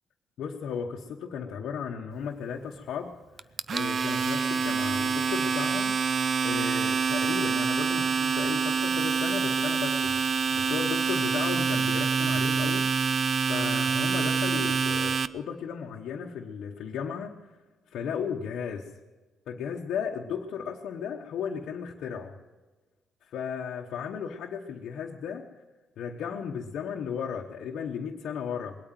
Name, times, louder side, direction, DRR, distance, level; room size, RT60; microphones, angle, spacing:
voice 1, 0.4-3.1 3.7-6.0 6.4-10.2 10.5-12.9 13.5-17.6 17.9-18.9 19.5-22.3 23.2-25.5 26.0-28.8, left 7 dB, 75° left, -1 dB, 1.0 m, -35 dB
Domestic sounds home sounds, 3.4-15.3, right 5 dB, 45° right, 0.5 m, -26 dB
20.5 x 8.9 x 7.5 m, 1.2 s
cardioid pair, 90°, 0 cm